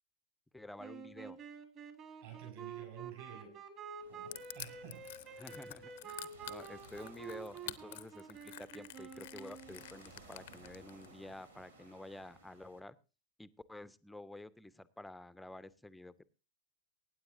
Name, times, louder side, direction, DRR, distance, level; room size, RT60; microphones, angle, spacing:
voice 1, 0.5-1.4 5.4-13.0 13.4-16.2, left 2 dB, 5° left, 0.6 m, -50 dB
sound 1, 0.8-10.0, right 6 dB, 35° right, 1.7 m, -49 dB
voice 2, 2.2-3.6 4.1-5.6, right 8 dB, 55° right, 4.6 m, -51 dB
sound 2, 4.0-12.8, right 2 dB, 75° right, 1.9 m, -60 dB
Crushing, 4.3-11.1, left 16 dB, 55° left, 0.7 m, -48 dB
24.0 x 9.5 x 2.6 m
figure-of-eight pair, 90°, 0 cm